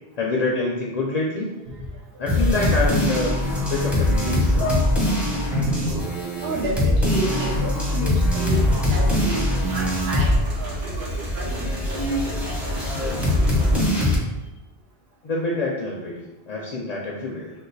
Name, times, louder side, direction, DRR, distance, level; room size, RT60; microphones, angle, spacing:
voice 1, 0.2-1.5 2.2-3.3 3.7-4.7 15.2-17.5, left 3 dB, 55° left, -3 dB, 0.5 m, -26 dB
sound 1, 2.3-10.5 10.7-14.2, left 1 dB, ahead, 0.5 m, -22 dB
voice 2, 3.3-3.8 6.0-6.1 6.4-12.3, right 1 dB, 75° right, -3 dB, 0.9 m, -32 dB
sound 2, 4.6-5.7 6.4-9.8 10.1-10.8 11.4-13.4, equal, 90° left, 0.9 m, -34 dB
sound 3, 8.5-13.9, equal, 50° right, 0.9 m, -30 dB
3.0 x 2.2 x 3.9 m, 1.0 s
omnidirectional pair, 1.1 m